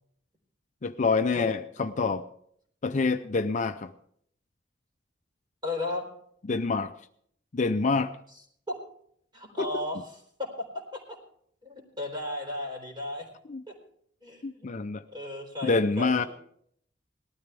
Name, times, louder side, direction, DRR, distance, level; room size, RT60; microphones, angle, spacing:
voice 1, 0.8-2.3 2.8-3.9 6.5-6.9 7.5-8.1 9.7-9.8 13.5-13.6 14.4-15.0 15.6-16.2, left 4 dB, 40° left, 9 dB, 0.5 m, -26 dB
voice 2, 5.6-6.0 8.7-8.8 9.3-10.0 10.4-10.5 10.9-11.0 11.6-13.3 13.7-13.8 14.2-14.7 15.1-16.3, left 2 dB, 25° right, 1 dB, 4.0 m, -34 dB
19.0 x 13.0 x 3.4 m, 0.66 s
head